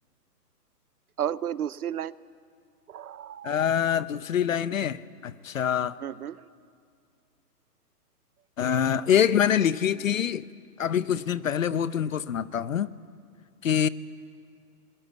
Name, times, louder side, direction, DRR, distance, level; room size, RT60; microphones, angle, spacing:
voice 1, 1.2-2.1 2.9-3.7 6.0-6.4, right 10 dB, 65° right, 0.8 m, -32 dB
voice 2, 3.4-6.0 8.6-10.4 10.8-12.9 13.6-13.9, left 9 dB, 55° left, 0.8 m, -25 dB
27.5 x 21.0 x 9.2 m
hypercardioid pair, 170°, 49 cm